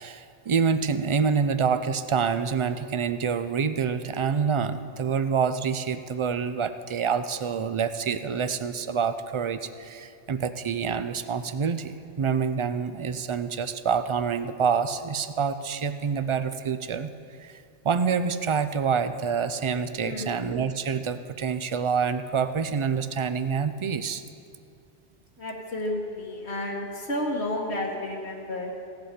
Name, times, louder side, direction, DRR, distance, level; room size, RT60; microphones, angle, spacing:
voice 1, 0.0-24.2, right 6 dB, 50° right, 11 dB, 0.3 m, -27 dB
voice 2, 20.0-20.4 25.4-28.7, left 1 dB, 80° left, -2 dB, 1.6 m, -31 dB
16.0 x 8.2 x 6.5 m, 2.4 s
omnidirectional pair, 1.1 m